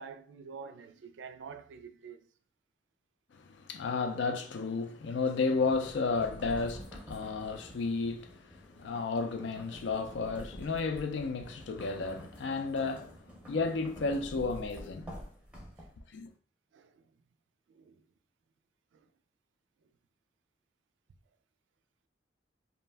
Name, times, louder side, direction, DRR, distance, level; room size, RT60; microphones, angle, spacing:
voice 1, 0.0-2.2 16.7-16.9 17.7-18.0, right 5 dB, 75° right, 0.3 m, -47 dB
voice 2, 3.3-13.2 13.5-15.1 16.1-16.3, left 4 dB, 70° left, 0.4 m, -33 dB
sound 1, 5.2-16.2, equal, 5° right, 0.5 m, -48 dB
2.4 x 2.1 x 3.2 m
head